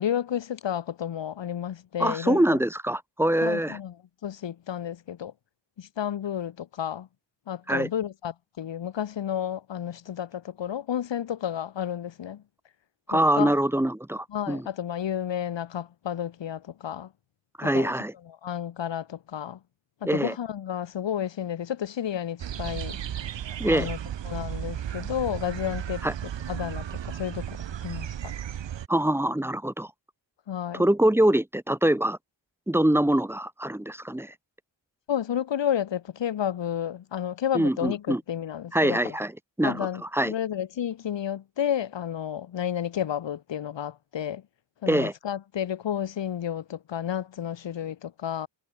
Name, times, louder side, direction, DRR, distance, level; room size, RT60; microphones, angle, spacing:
voice 1, 0.0-2.6 3.4-3.9 4.2-5.3 5.8-7.1 7.5-12.4 13.1-13.5 14.3-17.1 17.6-17.9 18.4-19.6 20.0-23.0 23.7-24.0 24.2-26.0 26.5-27.6 27.8-28.3 30.5-30.9 35.1-39.2 39.6-44.4 44.8-48.5, left 9 dB, 70° left, 7.1 m, -31 dB
voice 2, 2.0-3.8 7.7-7.9 13.1-14.7 17.6-18.1 20.0-20.3 23.6-23.9 26.0-26.1 28.9-29.9 30.7-32.2 32.7-34.3 37.5-38.2 38.7-39.3 39.6-40.3 44.9-45.1, right 1 dB, 5° right, 1.3 m, -24 dB
sound 1, 22.4-28.9, right 10 dB, 70° right, 5.2 m, -34 dB
cardioid pair, 115°, 45 cm